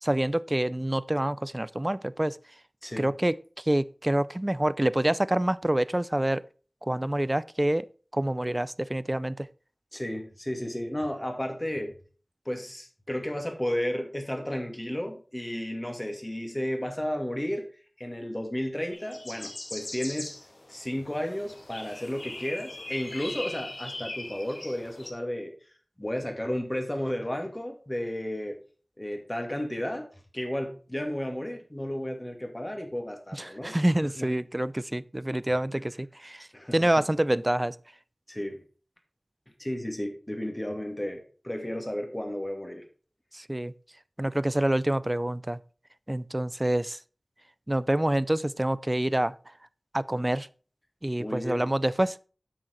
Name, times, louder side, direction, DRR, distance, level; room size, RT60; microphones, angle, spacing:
voice 1, 0.0-2.4 3.0-3.3 3.7-6.4 6.8-7.8 8.1-9.5 33.3-36.5 36.7-37.7 43.3-43.7 44.2-45.6 46.1-47.0 47.7-49.3 49.9-50.5 51.0-52.2, right 1 dB, 25° right, 0.5 m, -27 dB
voice 2, 2.8-3.1 9.9-11.9 12.5-17.7 18.0-20.3 20.7-25.5 26.0-28.6 29.0-30.1 30.3-33.8 34.0-34.3 36.5-37.0 38.3-38.6 39.6-42.8 51.2-51.6, left 1 dB, 25° left, 2.3 m, -33 dB
sound 1, 18.9-25.1, left 1 dB, 65° left, 2.3 m, -40 dB
8.8 x 6.3 x 4.5 m
wide cardioid pair, 40°, 0 cm